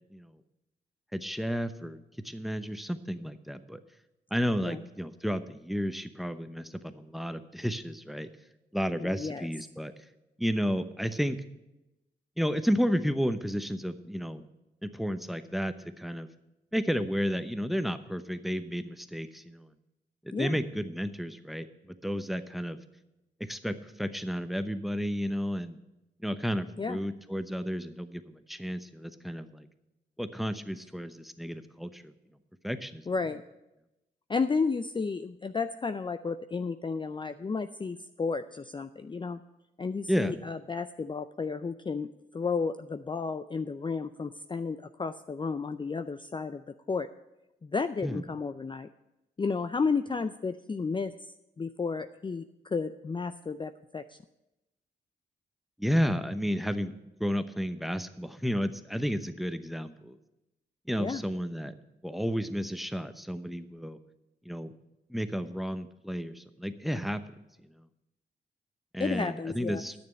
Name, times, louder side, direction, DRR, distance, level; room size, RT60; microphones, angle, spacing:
voice 1, 1.1-3.8 4.3-8.3 8.7-9.9 10.4-11.4 12.4-14.5 14.8-16.3 16.7-19.7 20.2-21.7 22.0-22.8 23.5-25.8 26.2-29.7 30.2-32.1 32.6-33.0 40.1-40.4 48.0-48.2 55.8-56.9 57.2-60.2 60.9-61.7 62.0-64.0 64.4-64.7 65.1-67.2 68.9-69.9, equal, ahead, 11 dB, 0.8 m, -32 dB
voice 2, 9.0-9.5 20.3-20.6 26.8-27.0 33.1-33.4 34.3-39.4 39.8-47.1 47.6-48.9 49.4-54.2 61.0-61.2 69.0-69.8, left 4 dB, 25° left, 10 dB, 0.4 m, -32 dB
9.5 x 6.8 x 8.6 m, 0.95 s
supercardioid pair, 50°, 19 cm